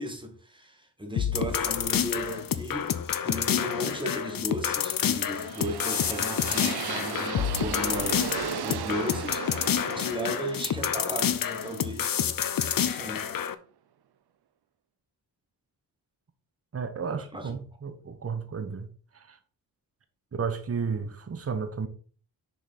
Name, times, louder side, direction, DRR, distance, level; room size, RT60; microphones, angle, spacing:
voice 1, 0.0-3.0 3.2-12.2 12.7-13.3 17.3-17.6, equal, 10° right, 1.8 m, -36 dB
sound 1, 1.2-13.5, left 9 dB, 60° left, 0.7 m, -28 dB
sound 2, 4.8-12.8, right 10 dB, 70° right, 0.7 m, -37 dB
voice 2, 16.7-18.9 19.3-19.4 20.3-21.9, right 5 dB, 35° right, 1.0 m, -32 dB
6.5 x 5.5 x 4.2 m
wide cardioid pair, 90°, 40 cm